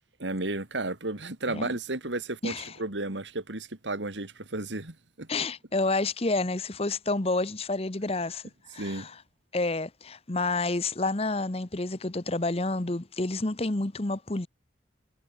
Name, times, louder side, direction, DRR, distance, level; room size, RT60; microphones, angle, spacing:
voice 1, 0.2-5.3 8.8-9.1, right 2 dB, 85° right, 2.6 m, -33 dB
voice 2, 5.3-8.4 8.7-9.1 9.5-14.5, left 2 dB, 35° left, 1.0 m, -29 dB
head